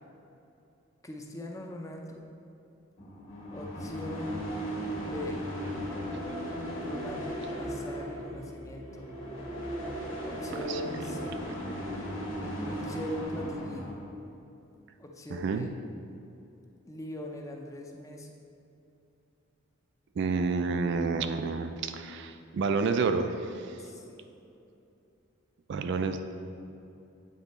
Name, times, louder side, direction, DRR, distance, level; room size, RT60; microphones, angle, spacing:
voice 1, 1.0-2.4 3.5-4.5 4.9-5.5 6.8-9.2 10.2-11.5 12.6-13.9 15.0-15.7 16.8-18.3 23.8-24.3, left 1 dB, 15° left, 1 dB, 0.5 m, -41 dB
sound 1, 3.0-14.1, equal, 65° left, 1.6 m, -36 dB
voice 2, 15.3-15.7 20.2-23.8 25.7-26.2, right 4 dB, 55° right, 8 dB, 0.3 m, -29 dB
8.8 x 4.0 x 4.1 m, 2.8 s
head